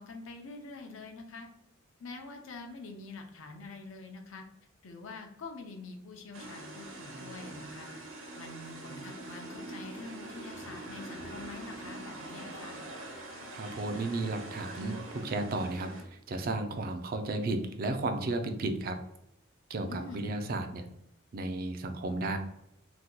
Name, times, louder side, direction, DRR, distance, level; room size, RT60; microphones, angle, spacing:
voice 1, 0.0-1.5 2.0-4.4 4.8-7.9 8.3-12.8 19.9-20.3, left 3 dB, 65° left, 3 dB, 0.6 m, -45 dB
sound 1, 6.3-16.0, right 2 dB, 60° right, 0.7 m, -44 dB
voice 2, 13.5-19.0 19.7-20.9 21.3-22.4, right 2 dB, 45° right, 6 dB, 0.4 m, -33 dB
2.8 x 2.2 x 3.6 m, 0.80 s
head